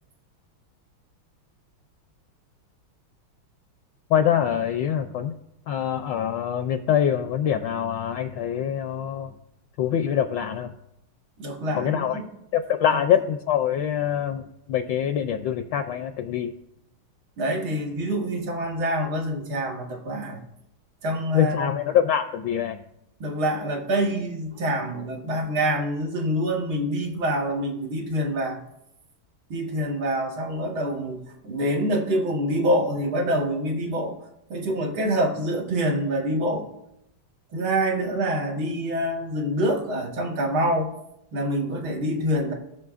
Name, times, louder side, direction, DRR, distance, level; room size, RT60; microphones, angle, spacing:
voice 1, 4.1-5.3 5.7-9.3 9.8-10.7 11.7-12.2 12.5-16.5 21.3-22.8, left 9 dB, 75° left, 8 dB, 1.1 m, -24 dB
voice 2, 11.4-12.2 12.9-13.0 17.4-20.4 21.0-21.7 23.2-28.6 29.5-34.2 34.5-36.7 37.5-40.9 41.3-42.5, equal, 70° right, 1 dB, 2.3 m, -26 dB
19.0 x 6.3 x 2.5 m, 0.84 s
omnidirectional pair, 2.3 m